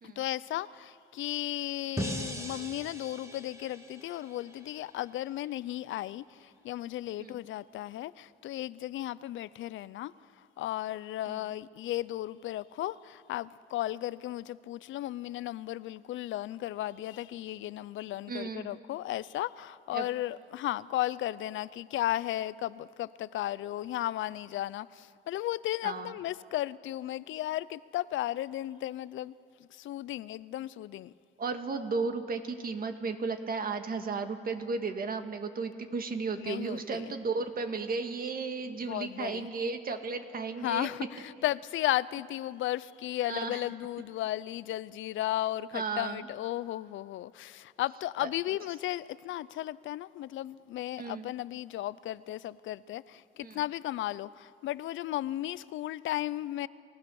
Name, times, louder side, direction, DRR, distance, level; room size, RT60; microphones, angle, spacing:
voice 1, 0.0-10.1 10.6-29.3 29.6-31.1 36.4-37.1 38.8-39.5 40.6-56.7, left 14 dB, 75° left, 0.5 m, -35 dB
sound 1, 2.0-5.1, right 1 dB, 15° right, 1.9 m, -40 dB
voice 2, 18.3-18.8 19.9-20.1 25.8-26.1 31.4-40.9 43.3-43.6 45.7-46.2 48.2-48.3 51.0-51.3 53.4-53.6, right 4 dB, 45° right, 1.8 m, -34 dB
29.5 x 16.0 x 7.1 m
cardioid pair, 90°, 20 cm